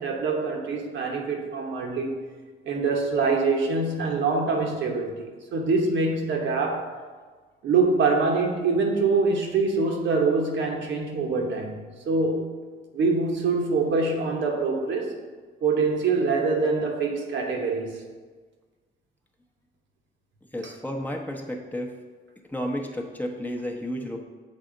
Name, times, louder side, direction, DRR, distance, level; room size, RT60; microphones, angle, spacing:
voice 1, 0.0-2.1 2.7-6.9 7.6-11.8 12.1-12.5 12.9-15.2 15.6-18.0, right 4 dB, 70° right, 1 dB, 1.0 m, -24 dB
voice 2, 20.5-21.9 22.5-24.2, equal, 10° left, 0 dB, 0.8 m, -32 dB
7.3 x 4.1 x 3.8 m, 1.4 s
cardioid pair, 90°, 20 cm